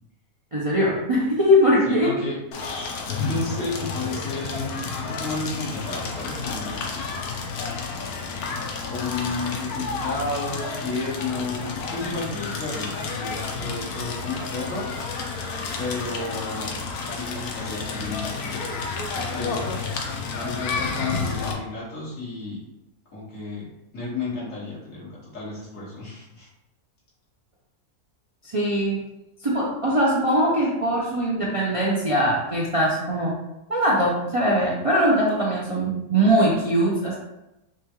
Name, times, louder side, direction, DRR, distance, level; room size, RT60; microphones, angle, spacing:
voice 1, 0.5-2.2 28.4-29.0 29.4-33.4 33.7-37.1, equal, 65° right, -5 dB, 0.3 m, -21 dB
voice 2, 1.9-2.4 3.1-6.8 8.8-14.9 15.8-16.7 17.1-18.7 19.1-19.7 20.3-22.6 23.1-26.5, left 3 dB, 55° left, -8 dB, 2.0 m, -32 dB
Crackle, 2.5-21.5, left 4 dB, 80° left, 1.2 m, -31 dB
6.0 x 2.3 x 3.0 m, 0.91 s
omnidirectional pair, 1.6 m